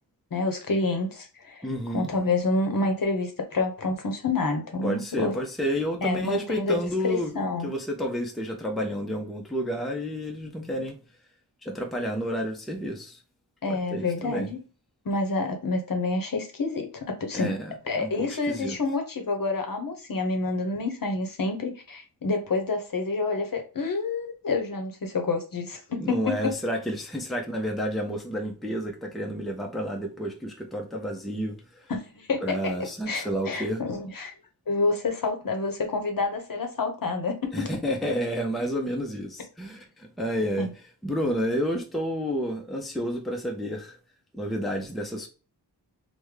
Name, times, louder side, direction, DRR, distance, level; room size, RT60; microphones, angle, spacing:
voice 1, 0.3-1.7 1.9-5.4 6.0-6.8 7.0-7.7 13.6-14.6 15.0-17.5 17.9-26.5 31.9-32.7 33.1-34.3 34.7-37.7 40.6-40.7, left 3 dB, 55° left, 0.8 m, -28 dB
voice 2, 1.6-2.1 4.8-11.0 11.6-13.2 13.7-14.5 17.3-18.8 26.0-31.6 32.4-33.8 37.5-40.7 41.0-44.0 44.3-45.3, equal, ahead, 0.6 m, -30 dB
3.5 x 2.2 x 3.1 m
wide cardioid pair, 100°, 42 cm